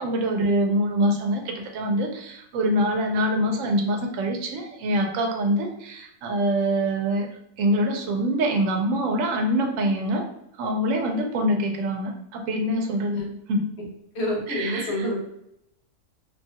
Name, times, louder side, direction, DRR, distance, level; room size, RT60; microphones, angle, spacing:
voice 1, 0.0-7.3 7.6-10.3 10.6-13.7 14.5-15.1, equal, 75° right, 3 dB, 0.9 m, -25 dB
voice 2, 14.1-15.2, equal, 60° left, -3 dB, 1.0 m, -27 dB
2.7 x 2.3 x 2.7 m, 0.78 s
omnidirectional pair, 1.4 m